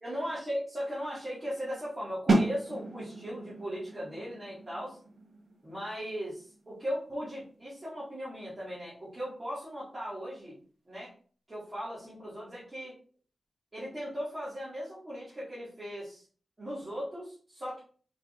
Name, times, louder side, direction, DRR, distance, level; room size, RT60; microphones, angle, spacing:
voice 1, 0.0-5.0 5.6-10.6 10.9-11.1 11.5-13.0 13.7-16.2 16.6-17.8, equal, 25° right, -11 dB, 2.1 m, -38 dB
sound 1, 2.3-8.0, right 2 dB, 55° right, 1.2 m, -33 dB
4.7 x 4.2 x 2.6 m, 0.43 s
wide cardioid pair, 160°, 0 cm